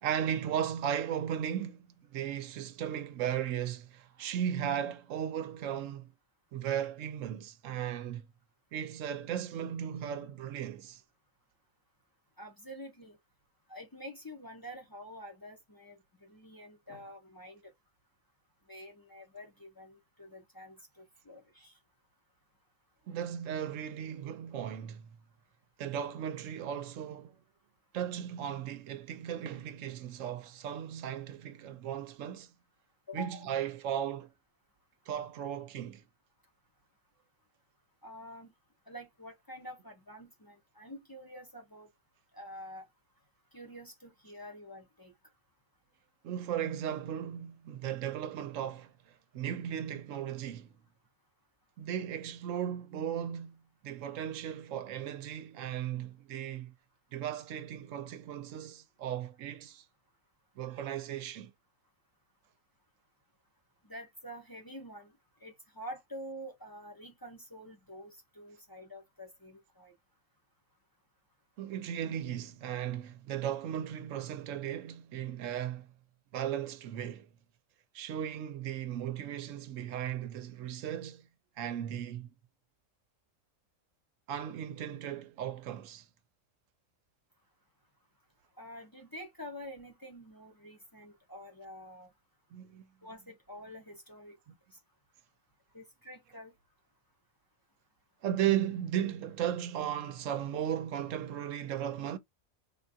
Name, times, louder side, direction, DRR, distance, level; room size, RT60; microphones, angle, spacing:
voice 1, 0.0-6.1 6.5-8.3 8.7-11.0 23.1-25.1 25.8-27.3 27.9-32.5 33.1-34.3 35.1-36.0 46.2-48.9 49.3-50.7 51.8-56.7 57.1-59.8 60.6-61.5 71.6-75.9 76.3-77.3 77.9-81.3 81.6-82.3 84.3-86.1 92.5-92.9 98.2-102.2, right 10 dB, 70° right, 0.9 m, -36 dB
voice 2, 12.4-13.2 13.7-17.7 18.7-21.8 33.1-33.5 38.0-38.5 38.9-41.9 42.3-42.9 43.5-45.1 63.8-65.1 65.4-69.9 88.6-92.1 93.0-94.4 95.7-96.5, equal, 25° left, 0.5 m, -47 dB
3.8 x 2.2 x 2.6 m
omnidirectional pair, 1.4 m